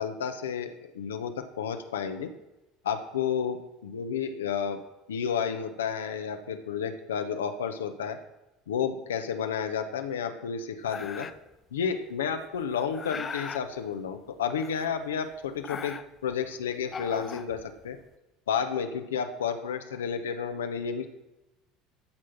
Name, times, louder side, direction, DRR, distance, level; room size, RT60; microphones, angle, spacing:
voice 1, 0.0-2.3 2.8-3.6 3.8-4.8 5.1-8.2 8.7-11.3 11.7-18.0 18.5-21.1, left 7 dB, 75° left, 7 dB, 1.1 m, -31 dB
sound 1, 10.9-11.5 12.4-13.7 14.5-15.1 15.4-16.4 16.8-18.0, left 6 dB, 30° left, 0.7 m, -39 dB
13.5 x 6.2 x 5.9 m, 0.98 s
figure-of-eight pair, 70°, 0 cm